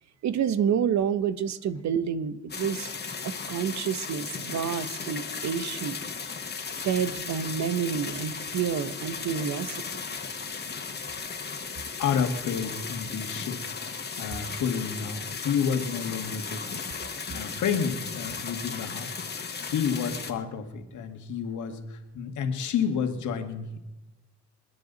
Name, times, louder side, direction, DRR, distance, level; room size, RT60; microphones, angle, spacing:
voice 1, 0.2-2.9 3.2-6.0 6.8-9.8, right 8 dB, 65° right, 13 dB, 1.1 m, -28 dB
sound 1, 2.5-20.3, left 5 dB, 35° left, 1.9 m, -36 dB
voice 2, 12.0-13.8 14.2-16.8 17.3-19.3 19.7-23.8, left 7 dB, 75° left, 6 dB, 2.0 m, -30 dB
27.5 x 10.0 x 4.1 m, 1.0 s
cardioid pair, 90°, 30 cm